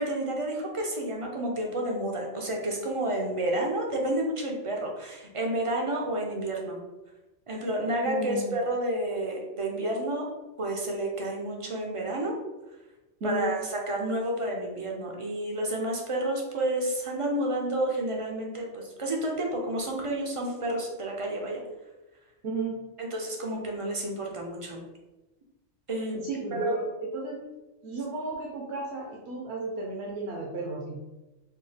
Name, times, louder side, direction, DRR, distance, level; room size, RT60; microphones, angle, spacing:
voice 1, 0.0-6.8 7.5-10.3 10.6-12.4 13.2-21.6 23.0-24.8 25.9-26.2 26.6-26.8, right 1 dB, 40° right, 0 dB, 0.5 m, -30 dB
voice 2, 8.0-8.6 13.2-13.5 22.4-22.8 26.1-26.9 27.1-27.4 27.8-31.0, right 2 dB, 65° right, -2 dB, 0.9 m, -33 dB
4.1 x 2.3 x 3.2 m, 1.0 s
omnidirectional pair, 1.2 m